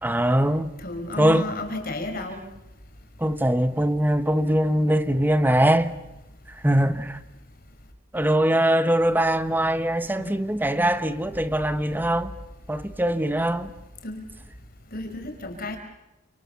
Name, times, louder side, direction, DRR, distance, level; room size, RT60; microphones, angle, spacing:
voice 1, 0.0-0.7 1.2-1.5 3.2-5.9 6.6-7.2 8.1-12.3 12.7-13.7, right 1 dB, 10° right, 1.1 m, -22 dB
voice 2, 0.8-2.5 10.2-10.5 14.0-14.2 14.9-15.8, left 1 dB, 45° left, 5.1 m, -33 dB
29.0 x 27.5 x 7.0 m
head